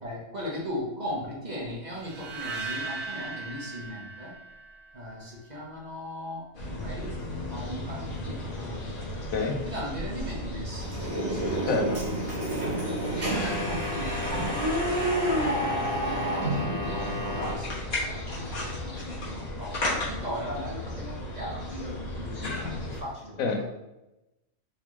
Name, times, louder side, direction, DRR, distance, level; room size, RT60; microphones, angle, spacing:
voice 1, 0.0-4.3 4.9-6.4 6.7-9.2 9.6-12.2 13.2-14.5 15.2-23.6, equal, 35° right, -4 dB, 0.9 m, -38 dB
sound 1, 2.0-5.2, right 3 dB, 70° right, 1.0 m, -38 dB
sound 2, 6.5-23.0, left 1 dB, 40° left, 1.2 m, -35 dB
voice 2, 9.3-9.6 11.7-12.0 23.4-23.6, left 4 dB, 85° left, 2 dB, 1.1 m, -26 dB
sound 3, 10.7-17.5, right 1 dB, 55° right, 1.6 m, -29 dB
4.1 x 3.4 x 3.0 m, 0.93 s
omnidirectional pair, 1.4 m